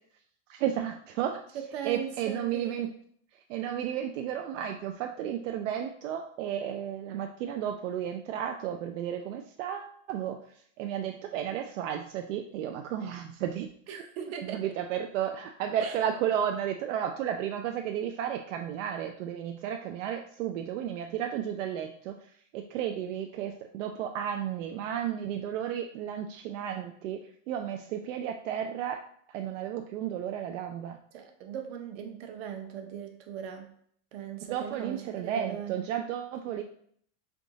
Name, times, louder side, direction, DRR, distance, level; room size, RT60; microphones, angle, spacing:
voice 1, 0.5-1.4 1.8-2.9 3.5-10.4 10.8-14.1 14.4-22.2 22.5-27.2 27.5-29.0 29.3-31.0 34.5-36.6, right 9 dB, 75° right, 5 dB, 0.5 m, -33 dB
voice 2, 1.5-2.9 13.9-14.7 15.8-16.0 31.1-33.7 34.1-35.8 36.5-36.6, right 8 dB, 55° right, 4 dB, 0.8 m, -39 dB
3.6 x 3.5 x 3.9 m, 0.63 s
supercardioid pair, 170°, 37 cm